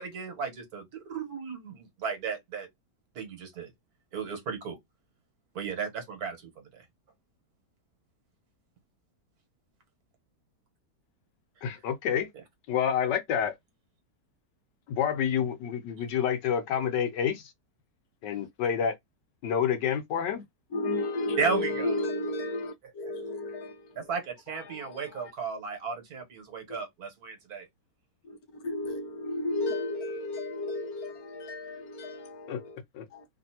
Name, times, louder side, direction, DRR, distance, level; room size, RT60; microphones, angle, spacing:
voice 1, 0.0-2.7 3.1-3.7 4.1-4.8 5.5-6.8 11.6-11.7 21.4-21.9 24.0-27.7, right 5 dB, 65° right, 1.5 m, -34 dB
voice 2, 11.6-12.3 12.7-13.6 14.9-17.5 18.2-18.9 19.4-20.4 32.5-32.6 32.9-33.0, left 8 dB, 85° left, 1.4 m, -28 dB
voice 3, 20.7-24.1 24.5-25.3 26.7-26.8 28.2-32.8 33.1-33.3, left 2 dB, 65° left, 1.2 m, -33 dB
3.1 x 2.6 x 2.8 m
omnidirectional pair, 1.8 m